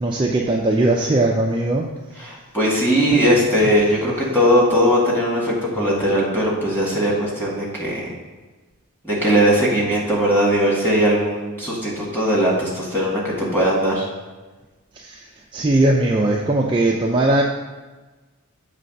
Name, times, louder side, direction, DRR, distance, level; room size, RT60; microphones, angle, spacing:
voice 1, 0.0-1.8 3.1-3.2 5.8-5.9 15.0-15.2 15.5-17.4, right 2 dB, 20° right, -1 dB, 0.4 m, -19 dB
voice 2, 2.2-8.1 9.0-14.1, equal, 10° left, -5 dB, 1.7 m, -19 dB
6.6 x 3.3 x 5.2 m, 1.2 s
head